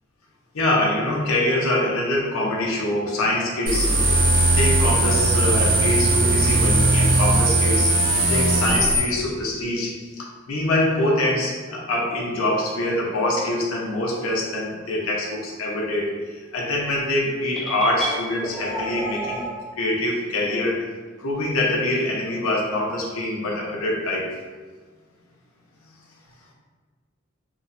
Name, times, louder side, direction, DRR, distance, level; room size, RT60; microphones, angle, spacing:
voice 1, 0.5-4.1 4.5-7.9 8.3-19.5 19.8-20.9 21.2-24.3, left 1 dB, 85° left, -2 dB, 0.6 m, -24 dB
sound 1, 3.7-9.0, right 2 dB, 45° right, 0.6 m, -19 dB
sound 2, 17.5-19.5, right 1 dB, ahead, 0.3 m, -30 dB
3.0 x 2.1 x 2.5 m, 1.4 s
head